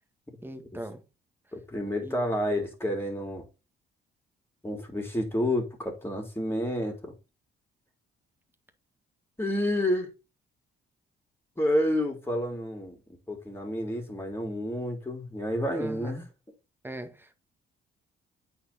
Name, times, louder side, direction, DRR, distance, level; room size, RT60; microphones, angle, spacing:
voice 1, 0.4-1.0 2.0-2.1 15.7-16.3 16.8-17.3, right 1 dB, 10° right, 1.8 m, -39 dB
voice 2, 1.5-3.5 4.6-7.1 9.4-10.1 11.6-13.0 13.3-16.2, left 1 dB, 10° left, 3.3 m, -29 dB
8.6 x 4.5 x 4.3 m
cardioid pair, 90°, 20 cm